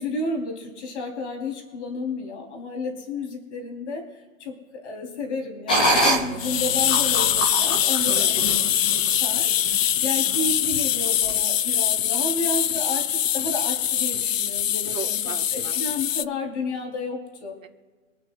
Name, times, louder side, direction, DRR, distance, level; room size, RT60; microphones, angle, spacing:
voice 1, 0.0-4.0 4.4-4.5 4.8-8.4 8.8-13.0 13.3-15.2 15.5-17.6, left 2 dB, 60° left, 1 dB, 4.0 m, -31 dB
sound 1, 5.7-9.1 9.6-9.8 10.3-10.6 11.2-11.3, equal, 5° left, 0.3 m, -25 dB
sound 2, 6.4-16.2, left 10 dB, 75° left, 0.7 m, -23 dB
voice 2, 8.1-8.6 14.9-15.8 17.6-17.7, right 7 dB, 85° right, 4 dB, 1.9 m, -38 dB
26.5 x 9.1 x 2.5 m, 1.4 s
hypercardioid pair, 140°, 39 cm